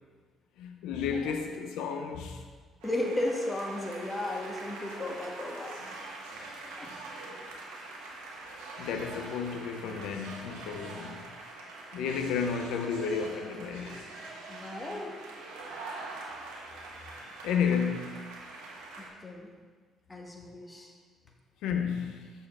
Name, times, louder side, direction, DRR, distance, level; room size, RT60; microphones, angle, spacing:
voice 1, 0.6-2.5 8.8-11.3 11.9-14.1 17.4-18.4 21.6-22.3, left 6 dB, 80° left, 0.6 m, -32 dB
voice 2, 2.8-5.7 6.8-6.9 14.5-15.1 19.0-19.5 20.1-20.9, left 1 dB, 25° left, 1.4 m, -34 dB
sound 1, 2.8-19.1, right 2 dB, 85° right, 1.2 m, -44 dB
6.9 x 6.3 x 3.6 m
supercardioid pair, 60°, 0 cm